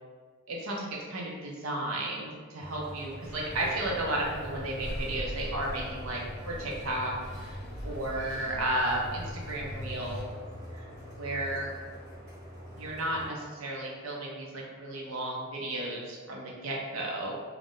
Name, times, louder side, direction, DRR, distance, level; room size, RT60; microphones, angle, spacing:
voice 1, 0.5-7.6 7.8-10.3 10.7-10.8 11.2-11.7 12.7-17.3, right 1 dB, 75° right, -2 dB, 0.5 m, -33 dB
sound 1, 2.6-13.3, equal, 50° right, 0.8 m, -45 dB
sound 2, 3.2-10.2, equal, 5° left, 0.7 m, -41 dB
2.4 x 2.0 x 3.6 m, 1.5 s
head